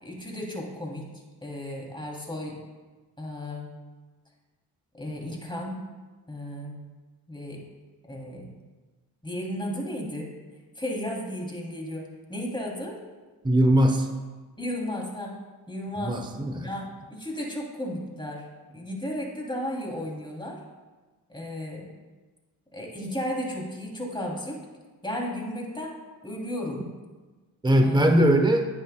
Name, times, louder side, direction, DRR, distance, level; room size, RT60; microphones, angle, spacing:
voice 1, 0.0-1.1 1.4-2.6 3.2-3.7 4.9-5.9 6.3-6.8 7.3-7.6 8.1-8.5 9.2-10.3 10.7-13.0 14.6-15.4 15.7-16.2 16.6-18.5 18.7-20.6 21.3-21.9 22.7-24.6 25.0-26.0 26.2-26.8 27.8-28.2, left 1 dB, 10° left, -2 dB, 2.8 m, -34 dB
voice 2, 13.4-14.1 16.0-16.7 27.6-28.7, right 1 dB, 10° right, 6 dB, 0.9 m, -20 dB
10.5 x 9.2 x 2.2 m, 1.3 s
supercardioid pair, 45°, 42 cm